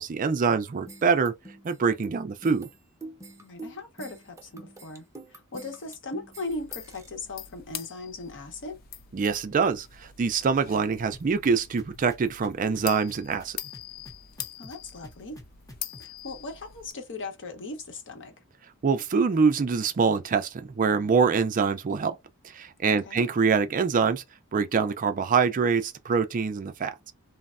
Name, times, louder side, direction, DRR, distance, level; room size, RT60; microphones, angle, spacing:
voice 1, 0.0-1.3 1.6-2.7 9.1-13.6 18.8-22.2 22.4-24.2 24.5-27.1, right 5 dB, 35° right, 0.4 m, -25 dB
sound 1, 0.9-7.1, right 2 dB, 15° right, 0.7 m, -45 dB
voice 2, 3.4-8.8 14.6-15.4 16.0-18.3 23.0-23.2, left 2 dB, 60° left, 0.8 m, -38 dB
sound 2, 6.5-16.9, left 10 dB, 40° left, 0.4 m, -43 dB
sound 3, 11.1-16.2, left 1 dB, 15° left, 0.7 m, -48 dB
3.2 x 2.0 x 2.4 m
head